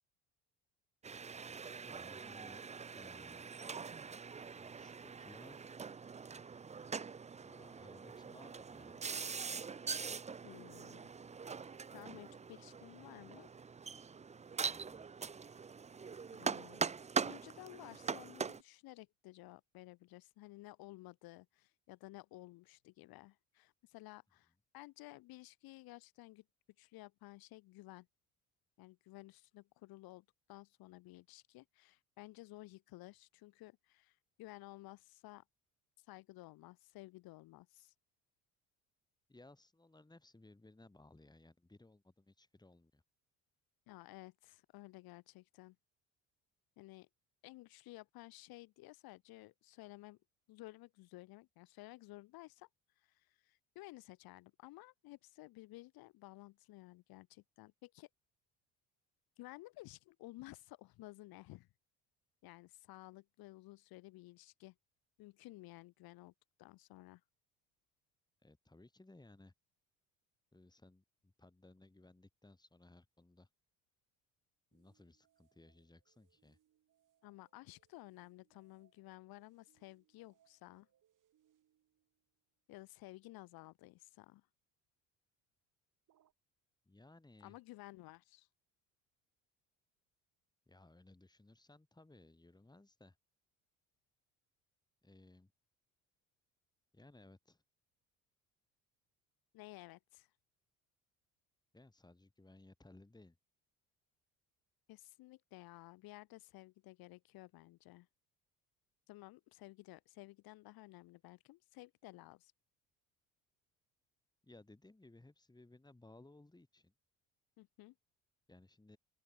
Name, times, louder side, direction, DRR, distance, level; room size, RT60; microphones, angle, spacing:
sound 1, 1.0-18.6, right 5 dB, 20° right, 0.6 m, -43 dB
voice 1, 1.8-2.6 2.9-3.5 4.5-5.7 7.4-9.0 14.6-15.1 39.3-43.0 68.4-69.5 70.5-73.5 74.7-76.6 86.8-87.6 90.7-93.2 95.0-95.5 96.9-97.6 101.7-103.4 114.4-116.9 118.5-119.0, left 2 dB, 10° left, 4.5 m, -61 dB
voice 2, 10.4-11.1 11.9-13.5 16.3-26.4 26.8-28.1 28.8-35.4 36.1-37.9 43.9-45.8 46.8-47.1 47.4-50.2 50.5-52.7 53.0-58.1 59.4-61.7 62.4-64.7 65.2-66.3 66.6-67.2 77.2-80.9 82.7-84.4 87.4-88.5 99.5-100.3 104.9-108.1 109.1-112.5 117.6-117.9, left 19 dB, 70° left, 4.7 m, -55 dB
sound 2, 74.7-82.4 86.1-86.3, right 11 dB, 55° right, 7.8 m, -77 dB
open air
supercardioid pair, 70°, 37 cm